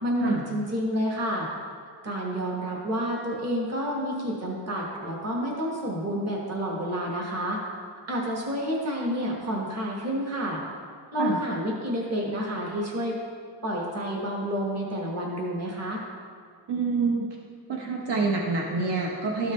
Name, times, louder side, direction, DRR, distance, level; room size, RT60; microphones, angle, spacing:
voice 1, 0.0-1.5 2.0-7.6 8.1-10.6 11.1-13.2 13.6-16.0, equal, 35° right, -3 dB, 1.3 m, -29 dB
voice 2, 16.7-17.3 17.7-19.5, right 4 dB, 65° right, -1 dB, 0.9 m, -26 dB
13.5 x 5.0 x 3.1 m, 2.1 s
wide cardioid pair, 155°, 44 cm